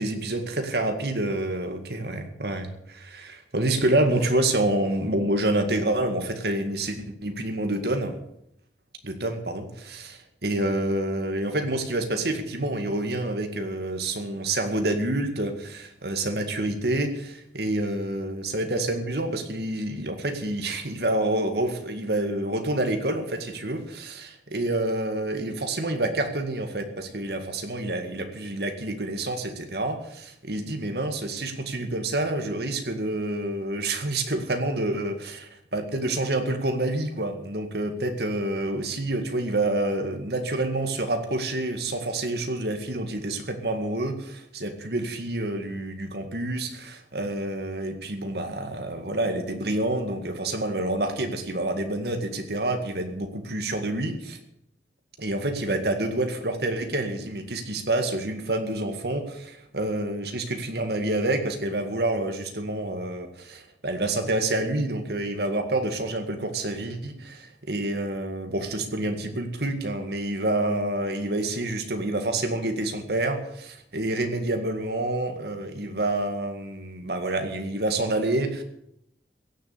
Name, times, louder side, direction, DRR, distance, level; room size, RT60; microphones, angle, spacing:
voice 1, 0.0-2.7 3.0-8.2 9.0-10.1 10.4-54.4 55.2-78.6, right 1 dB, 65° right, 6 dB, 2.0 m, -28 dB
16.5 x 7.3 x 8.4 m, 0.76 s
head